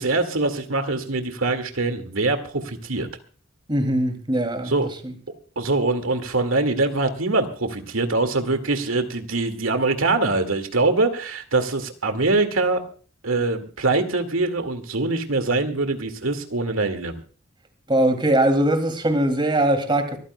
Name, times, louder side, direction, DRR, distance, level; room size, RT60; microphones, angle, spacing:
voice 1, 0.0-3.1 4.7-4.9 5.6-12.8 13.2-17.1, right 3 dB, 85° right, 2.1 m, -23 dB
voice 2, 3.7-4.7 5.0-5.1 17.9-20.2, right 1 dB, 25° right, 2.5 m, -21 dB
24.5 x 14.5 x 2.2 m
head